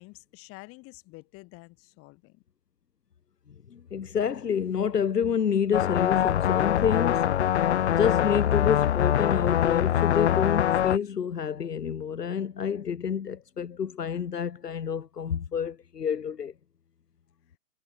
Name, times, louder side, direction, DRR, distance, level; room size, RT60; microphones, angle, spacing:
voice 1, 0.0-2.4, left 24 dB, 30° left, 7.1 m, -48 dB
voice 2, 3.5-7.3 7.9-16.5, left 7 dB, 75° left, 1.0 m, -28 dB
sound 1, 5.7-11.0, left 10 dB, 45° left, 0.5 m, -23 dB
figure-of-eight pair, 120°, 48 cm